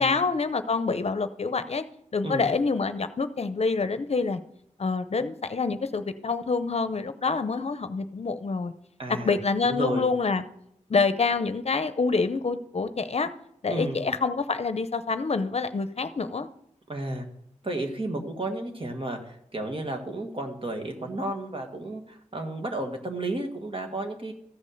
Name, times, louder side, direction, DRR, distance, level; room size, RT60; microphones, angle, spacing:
voice 1, 0.0-1.9 2.1-4.4 4.8-8.7 9.2-10.4 10.9-13.3 13.6-16.5, left 4 dB, 55° left, 11 dB, 0.7 m, -26 dB
voice 2, 9.0-9.4 9.7-10.0 13.7-14.0 16.9-17.3 17.6-24.3, right 2 dB, 45° right, 3 dB, 1.8 m, -32 dB
14.0 x 5.4 x 6.5 m, 0.76 s
wide cardioid pair, 80°, 13 cm